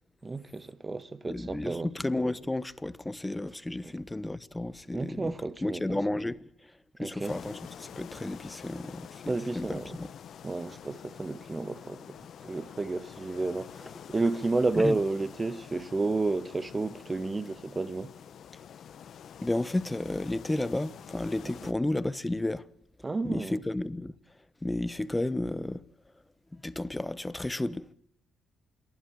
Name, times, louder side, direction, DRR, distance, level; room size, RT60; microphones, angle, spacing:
voice 1, 0.2-1.9 3.8-3.9 4.9-6.0 7.0-7.3 9.3-10.0 10.4-12.0 12.4-18.1 23.0-23.6, right 3 dB, 25° right, 1.3 m, -31 dB
voice 2, 1.3-5.3 5.6-6.7 7.0-10.1 14.7-15.0 19.4-22.7 23.2-24.1 24.6-25.8 26.5-27.9, left 1 dB, 10° left, 1.0 m, -32 dB
sound 1, 7.2-21.7, left 9 dB, 65° left, 0.7 m, -47 dB
27.5 x 11.5 x 8.6 m
cardioid pair, 90°, 0 cm